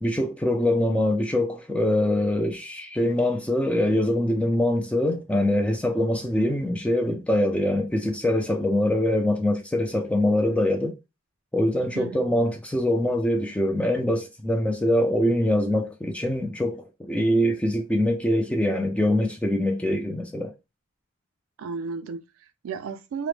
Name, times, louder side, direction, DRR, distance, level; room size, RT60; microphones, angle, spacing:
voice 1, 0.0-10.9 11.5-20.5, left 1 dB, 5° left, 0.3 m, -23 dB
voice 2, 11.9-12.3 21.6-23.3, right 5 dB, 80° right, 0.3 m, -34 dB
2.0 x 2.0 x 3.1 m
head